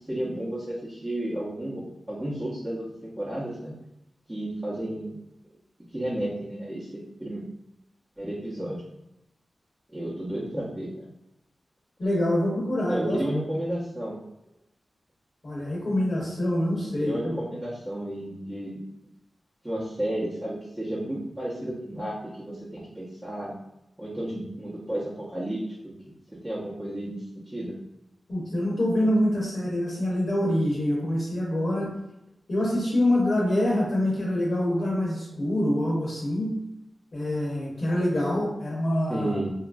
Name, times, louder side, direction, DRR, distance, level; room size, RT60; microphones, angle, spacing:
voice 1, 0.1-3.7 4.3-5.2 5.9-7.4 8.2-8.8 9.9-11.1 12.9-14.2 17.0-18.8 19.6-23.5 24.0-25.9 26.3-27.7 39.1-39.5, right 1 dB, 15° right, -10 dB, 0.8 m, -32 dB
voice 2, 12.0-13.2 15.4-17.4 28.3-31.9 32.5-36.5 37.1-39.4, left 1 dB, 55° left, -5 dB, 0.8 m, -25 dB
3.0 x 2.4 x 2.4 m, 0.86 s
cardioid pair, 60°, 0 cm